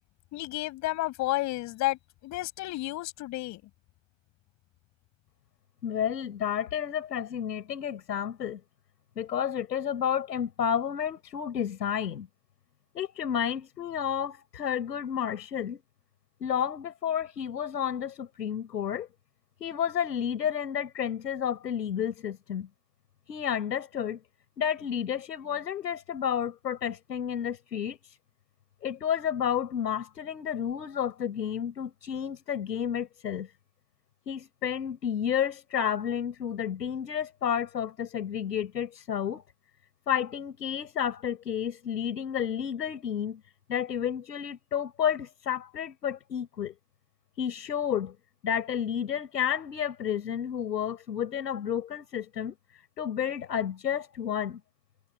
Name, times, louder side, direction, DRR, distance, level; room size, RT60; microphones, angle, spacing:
voice 1, 0.3-3.6, left 18 dB, 35° left, 7.4 m, -31 dB
voice 2, 5.8-8.6 9.1-12.3 12.9-15.8 16.4-19.1 19.6-22.7 23.3-24.2 24.6-28.0 28.8-33.5 34.3-39.4 40.1-43.4 43.7-46.7 47.4-48.1 48.4-52.5 53.0-54.6, left 9 dB, 80° left, 6.6 m, -31 dB
hypercardioid pair, 130°, 49 cm